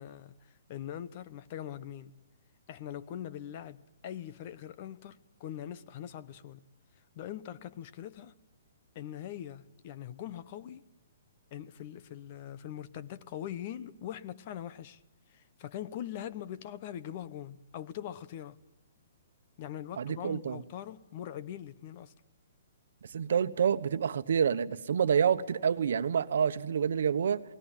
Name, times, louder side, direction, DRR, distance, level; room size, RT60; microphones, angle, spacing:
voice 1, 0.0-2.1 2.7-6.6 7.1-8.3 8.9-10.8 11.5-15.0 15.3-18.6 19.6-22.1, left 11 dB, 40° left, 1.0 m, -42 dB
voice 2, 20.0-20.6 23.1-27.4, right 7 dB, 70° right, 1.1 m, -28 dB
28.0 x 19.0 x 9.1 m
hypercardioid pair, 150°, 0 cm